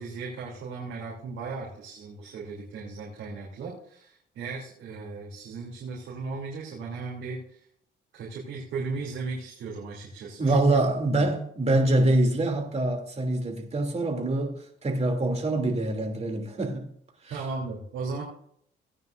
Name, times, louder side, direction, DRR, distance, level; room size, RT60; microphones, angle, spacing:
voice 1, 0.0-7.6 8.1-10.8 11.1-11.2 17.3-18.2, right 4 dB, 80° right, 3.2 m, -36 dB
voice 2, 10.4-16.9 17.2-17.3, right 2 dB, 35° right, 2.9 m, -25 dB
17.0 x 9.4 x 2.6 m
cardioid pair, 90°, 20 cm